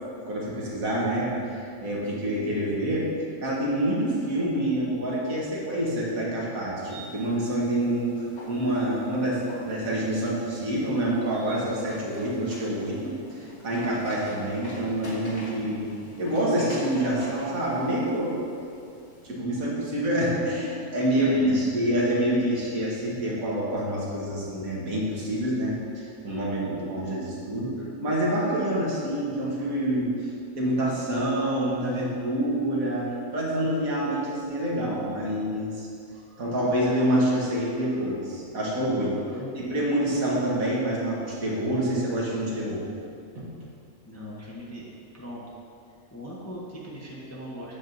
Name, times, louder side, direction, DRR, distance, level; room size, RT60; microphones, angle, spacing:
voice 1, 0.3-3.1 3.4-15.8 16.2-18.4 19.2-30.1 30.5-35.9 36.4-39.2 39.7-42.9 43.3-43.4, right 1 dB, 70° right, -5 dB, 1.8 m, -27 dB
sound 1, 6.8-19.3, left 1 dB, 55° left, 1.8 m, -45 dB
voice 2, 21.1-21.9 39.3-39.6 44.0-44.9 45.1-45.4 45.9-47.7, equal, 15° left, -6 dB, 0.8 m, -39 dB
8.5 x 7.3 x 2.6 m, 2.4 s
omnidirectional pair, 1.5 m